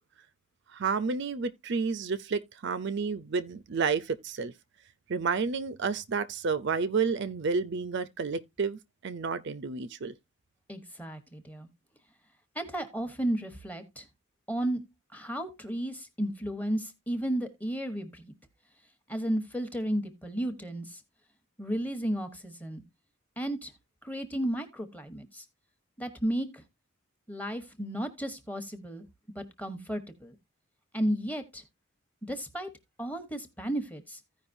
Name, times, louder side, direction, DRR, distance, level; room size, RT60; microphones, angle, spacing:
voice 1, 0.7-4.5 5.1-10.1, right 5 dB, 55° right, 0.5 m, -30 dB
voice 2, 10.7-11.7 12.5-14.0 14.5-14.8 15.1-18.3 19.1-21.0 21.6-22.8 23.4-23.7 24.0-25.4 26.0-26.6 27.3-29.0 29.3-30.4 30.9-31.6 32.2-32.7 33.0-34.2, right 1 dB, 5° left, 1.0 m, -33 dB
15.5 x 5.1 x 2.6 m
head